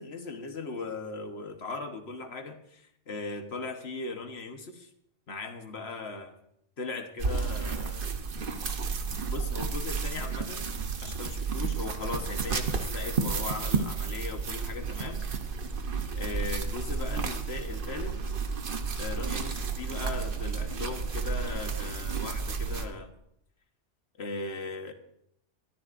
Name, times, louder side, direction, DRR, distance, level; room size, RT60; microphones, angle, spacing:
voice 1, 0.0-4.9 5.3-6.4 6.8-8.1 9.3-15.2 16.1-18.2 19.0-23.1 24.2-24.9, left 3 dB, 60° left, 6 dB, 1.5 m, -38 dB
sound 1, 7.2-22.9, right 5 dB, 50° right, 1.1 m, -32 dB
22.0 x 13.0 x 2.6 m, 0.76 s
omnidirectional pair, 1.2 m